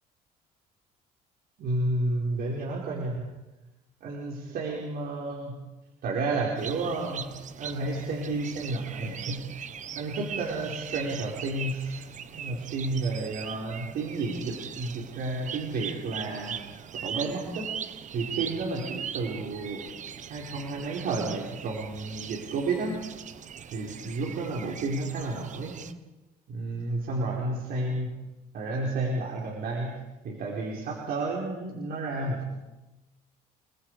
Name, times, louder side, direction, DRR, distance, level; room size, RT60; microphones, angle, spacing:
voice 1, 1.6-3.3 4.0-5.6 6.0-7.3 7.6-9.5 9.9-12.0 12.3-16.6 17.0-17.7 18.1-19.8 20.3-23.0 23.7-25.7 26.5-28.1 28.5-30.0 30.2-32.5, right 2 dB, 65° right, -2 dB, 4.8 m, -31 dB
sound 1, 6.6-25.9, right 8 dB, 45° right, 1.2 m, -40 dB
29.0 x 21.0 x 5.0 m, 1.1 s
cardioid pair, 110°, 17 cm